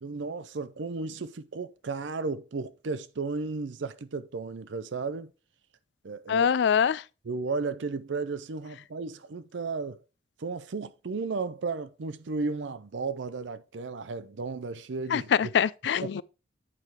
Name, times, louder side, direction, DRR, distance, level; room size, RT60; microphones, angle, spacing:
voice 1, 0.0-5.3 6.0-6.5 7.3-10.0 10.4-15.3, right 4 dB, 80° right, 0.5 m, -34 dB
voice 2, 6.3-7.0 15.1-16.2, left 7 dB, 65° left, 0.3 m, -24 dB
8.6 x 4.8 x 4.3 m
head